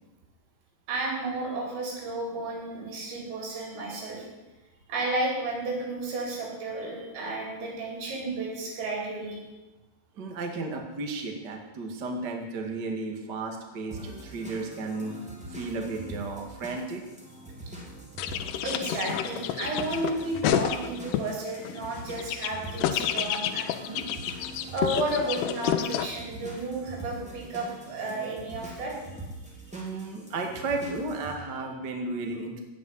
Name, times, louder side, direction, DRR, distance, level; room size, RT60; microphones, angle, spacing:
voice 1, 0.9-4.2 4.9-9.5 18.6-24.0 24.7-29.0, right 2 dB, 75° right, -2 dB, 6.7 m, -32 dB
voice 2, 10.2-15.2 15.5-17.0 29.7-32.6, right 3 dB, 45° right, 2 dB, 1.4 m, -34 dB
sound 1, 13.9-31.3, right 1 dB, 5° right, 1.5 m, -43 dB
sound 2, 18.2-21.3 21.7-26.1, left 11 dB, 75° left, 2.6 m, -29 dB
17.0 x 7.0 x 9.5 m, 1.1 s
omnidirectional pair, 5.2 m